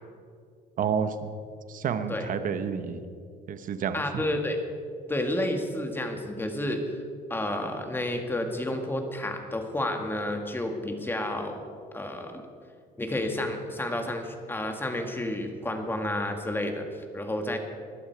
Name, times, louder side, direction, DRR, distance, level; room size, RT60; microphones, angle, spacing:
voice 1, 0.8-1.3 1.7-3.0 3.5-4.0, right 7 dB, 50° right, 10 dB, 1.1 m, -29 dB
voice 2, 3.9-4.6 5.1-6.8 7.3-11.6 11.9-12.4 13.0-17.6, left 1 dB, 10° left, 5 dB, 1.9 m, -30 dB
20.0 x 12.0 x 4.7 m, 2.3 s
cardioid pair, 110°, 17 cm